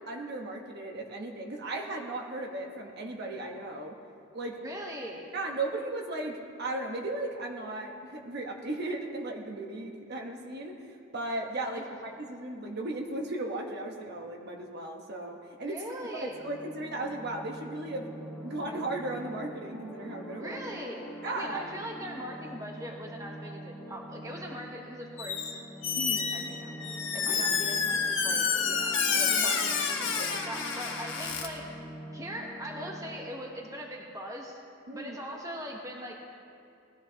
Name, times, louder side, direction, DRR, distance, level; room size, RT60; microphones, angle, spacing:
voice 1, 0.1-3.9 4.3-4.6 5.3-15.8 16.1-18.1 18.4-20.6 21.2-21.6 25.9-26.4 27.2-27.4 29.2-29.6 30.2-30.4 34.9-35.2, right 2 dB, 50° right, 1 dB, 1.1 m, -36 dB
voice 2, 4.6-5.3 11.7-12.1 15.6-16.4 20.4-25.6 26.3-31.7 32.1-34.6 34.9-36.2, equal, 15° right, 0 dB, 1.0 m, -41 dB
sound 1, 16.2-33.6, equal, 5° left, 1.3 m, -45 dB
Squeak, 25.2-25.5 25.8-31.5, left 6 dB, 60° left, 1.3 m, -29 dB
19.5 x 13.0 x 2.9 m, 2.5 s
head